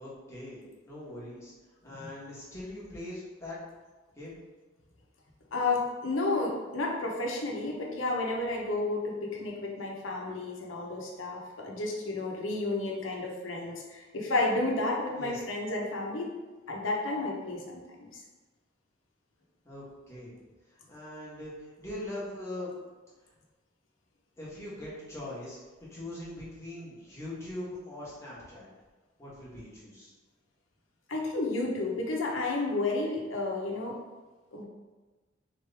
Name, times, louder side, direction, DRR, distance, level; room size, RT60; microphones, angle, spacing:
voice 1, 0.0-1.5 1.8-3.6 4.2-4.4 15.1-15.4 19.6-20.3 20.7-22.8 24.4-25.6 25.9-28.7 29.2-30.1, left 1 dB, 15° left, -8 dB, 1.3 m, -41 dB
voice 2, 5.5-16.4 16.7-18.2 31.1-34.0 34.5-34.6, left 2 dB, 80° left, -1 dB, 0.9 m, -31 dB
4.1 x 3.2 x 3.4 m, 1.3 s
head